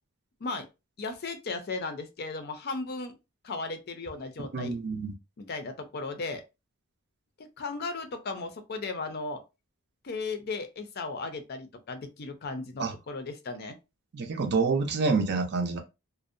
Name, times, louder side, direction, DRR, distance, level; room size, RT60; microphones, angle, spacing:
voice 1, 1.0-3.2 3.4-4.8 5.4-6.4 7.4-9.4 10.0-13.8, left 3 dB, 50° left, 0.5 m, -36 dB
voice 2, 4.5-5.1 12.8-12.9 14.1-15.8, right 4 dB, 50° right, 0.5 m, -27 dB
2.5 x 2.0 x 2.5 m
head